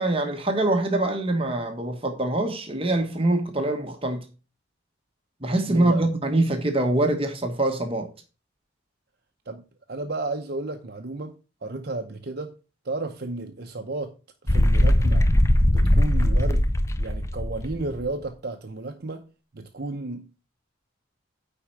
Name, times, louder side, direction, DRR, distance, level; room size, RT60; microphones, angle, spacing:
voice 1, 0.0-4.2 5.4-8.1, right 2 dB, 30° right, 1.2 m, -24 dB
voice 2, 5.7-6.1 9.5-12.5 12.8-14.1 14.4-15.3 15.7-16.7 17.0-20.3, right 2 dB, 50° right, 0.8 m, -33 dB
sound 1, 14.5-18.1, left 1 dB, 15° left, 0.5 m, -20 dB
9.7 x 4.4 x 5.8 m
head